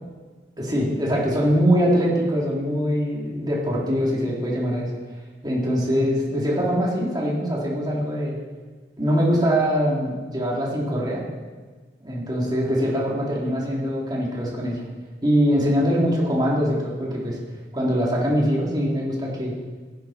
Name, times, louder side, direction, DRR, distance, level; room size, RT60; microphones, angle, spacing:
voice 1, 0.6-4.9 5.4-8.3 9.0-11.2 12.0-14.8 15.2-17.4 17.7-19.5, equal, 25° right, -4 dB, 3.2 m, -23 dB
15.5 x 11.5 x 4.4 m, 1.4 s
head